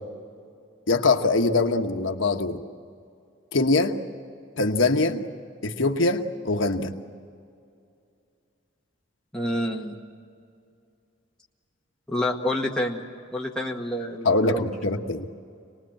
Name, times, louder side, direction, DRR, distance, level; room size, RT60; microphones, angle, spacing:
voice 1, 0.9-2.6 3.5-3.9 4.6-5.2 5.6-6.9 14.2-15.3, left 3 dB, 70° left, 5 dB, 1.2 m, -23 dB
voice 2, 9.3-10.0 12.1-13.0 13.3-14.7, left 1 dB, 5° left, -2 dB, 1.8 m, -28 dB
26.0 x 19.5 x 8.9 m, 2.4 s
head